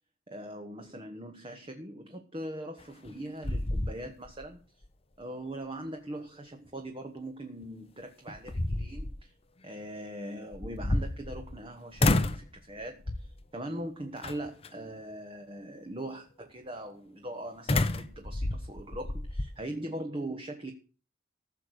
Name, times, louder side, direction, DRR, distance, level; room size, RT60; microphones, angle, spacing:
voice 1, 0.3-4.8 5.2-9.3 9.6-20.7, right 1 dB, 25° right, 5 dB, 1.3 m, -41 dB
sound 1, 2.8-3.2 3.4-4.5 4.8-4.9 7.6-7.7 8.3-9.2 10.5-11.6 12.0-12.5 13.1-13.4 14.2-14.7 17.7-19.5, left 2 dB, 30° left, 0.8 m, -30 dB
15.0 x 6.6 x 8.0 m, 0.38 s
head